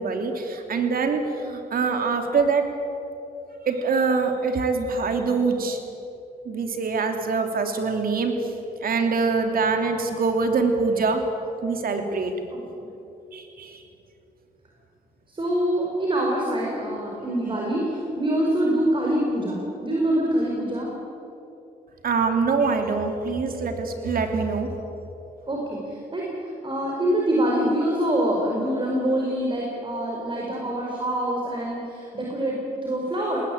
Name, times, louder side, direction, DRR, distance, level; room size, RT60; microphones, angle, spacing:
voice 1, 0.0-2.7 3.6-5.8 6.4-8.5 8.8-11.2 11.6-12.3 13.3-13.8 22.0-24.7, right 4 dB, 60° right, 5 dB, 3.2 m, -24 dB
voice 2, 15.3-20.9 25.5-33.4, right 1 dB, 30° right, -2 dB, 5.1 m, -25 dB
19.5 x 19.5 x 8.8 m, 2.9 s
cardioid pair, 75°, 17 cm